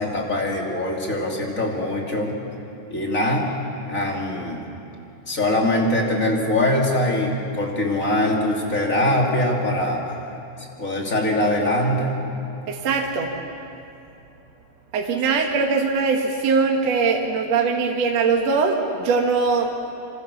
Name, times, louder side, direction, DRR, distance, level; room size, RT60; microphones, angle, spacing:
voice 1, 0.0-2.4 2.9-3.5 3.9-4.6 5.3-10.2 10.8-12.2, left 1 dB, 25° left, 0 dB, 3.0 m, -22 dB
voice 2, 12.7-13.3 14.9-19.7, right 4 dB, 55° right, 1 dB, 2.4 m, -21 dB
26.5 x 26.0 x 7.1 m, 2.8 s
omnidirectional pair, 3.9 m